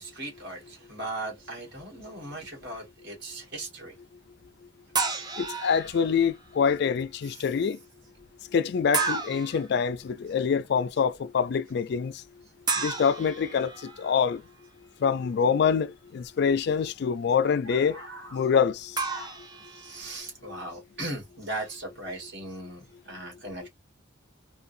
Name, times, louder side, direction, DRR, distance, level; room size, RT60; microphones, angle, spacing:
voice 1, 0.0-3.9 7.2-7.7 17.6-18.6 19.1-19.4 19.6-23.7, right 2 dB, 60° right, 1.9 m, -39 dB
sound 1, 4.9-6.3 8.9-9.7 12.7-14.2 19.0-20.2, right 4 dB, 20° right, 0.6 m, -31 dB
voice 2, 5.4-7.8 8.5-12.1 12.8-13.7 14.0-14.4 15.0-18.0 18.3-18.9, left 6 dB, 55° left, 0.3 m, -25 dB
3.6 x 2.3 x 2.6 m
head